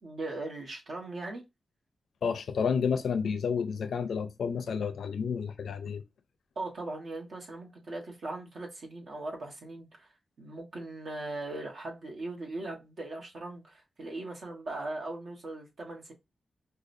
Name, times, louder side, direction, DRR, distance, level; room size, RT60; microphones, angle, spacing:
voice 1, 0.0-1.4 6.5-10.1 10.4-16.1, right 2 dB, 70° right, 1.2 m, -39 dB
voice 2, 2.2-6.0, left 6 dB, 85° left, 0.4 m, -30 dB
4.8 x 2.3 x 2.6 m
wide cardioid pair, 105°, 0 cm